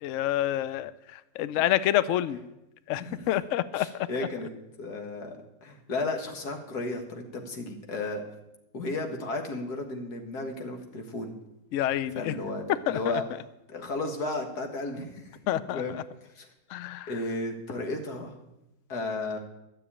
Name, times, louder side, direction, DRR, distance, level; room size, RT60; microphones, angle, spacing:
voice 1, 0.0-2.4 2.9-3.9 11.7-12.3 12.9-13.2 15.5-15.8 16.7-17.1, left 13 dB, 85° left, 14 dB, 0.6 m, -28 dB
voice 2, 3.0-3.3 3.7-4.5 4.8-5.4 5.6-8.2 8.7-11.4 12.2-13.2 13.7-16.5 17.1-18.4 18.9-19.4, left 2 dB, 60° left, 3 dB, 2.2 m, -34 dB
13.0 x 6.9 x 8.6 m, 0.91 s
omnidirectional pair, 2.0 m